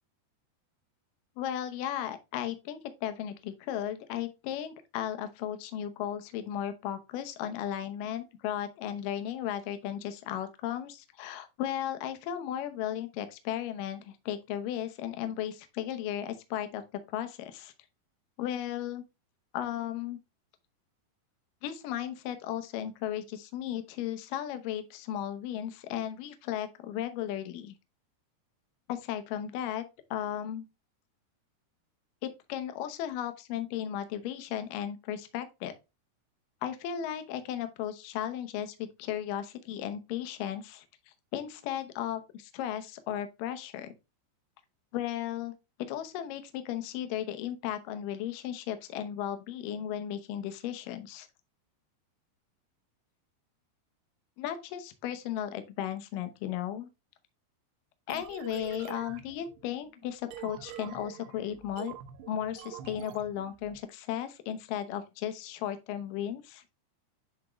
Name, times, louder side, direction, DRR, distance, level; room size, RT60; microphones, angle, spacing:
voice 1, 1.4-16.8 17.1-17.7 18.4-19.0 19.5-20.2 21.6-27.7 28.9-29.9 30.1-30.7 32.2-35.7 36.6-40.8 41.3-43.9 44.9-45.5 45.8-51.3 54.4-56.9 58.1-61.9 62.3-66.6, left 10 dB, 75° left, 2.1 m, -35 dB
sound 1, 58.1-63.8, right 10 dB, 75° right, 2.9 m, -46 dB
10.0 x 3.6 x 3.0 m
omnidirectional pair, 5.0 m